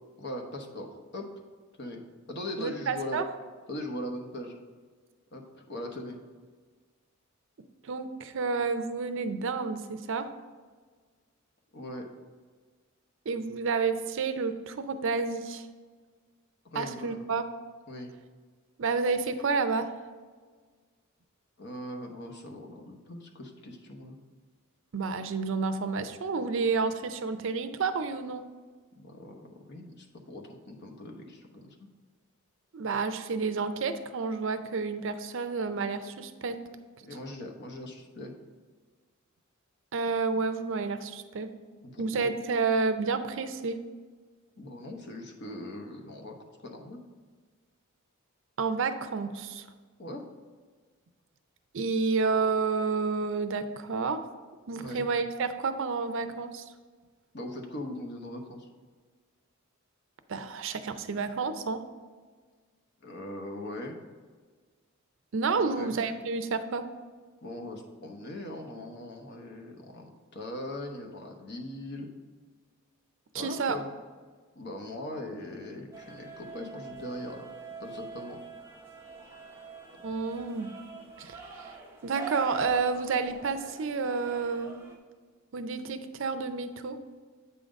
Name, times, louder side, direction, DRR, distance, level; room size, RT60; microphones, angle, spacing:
voice 1, 0.2-1.3 1.8-2.0 2.3-3.2 3.7-4.5 5.3-6.2 11.7-12.1 16.6-17.2 17.9-18.1 21.6-24.2 29.0-31.9 37.0-38.3 41.8-42.3 44.6-47.0 50.0-50.2 54.8-55.0 57.3-58.7 63.0-64.0 65.6-66.0 67.4-72.1 73.3-73.9 74.6-77.5 77.8-78.4, left 1 dB, 55° left, 3 dB, 1.0 m, -40 dB
voice 2, 2.6-3.2 7.8-10.3 13.3-15.7 16.7-17.4 18.8-19.9 24.9-28.4 32.7-36.6 39.9-41.5 42.0-43.8 48.6-49.7 51.7-54.2 54.7-56.6 60.3-61.8 65.3-66.9 73.3-73.8 80.0-80.7 81.2-81.4 82.0-84.8 85.5-87.0, right 4 dB, 65° right, 9 dB, 0.5 m, -30 dB
sound 1, 75.9-85.0, right 5 dB, 10° right, 0.9 m, -44 dB
8.3 x 3.8 x 5.2 m, 1.5 s
head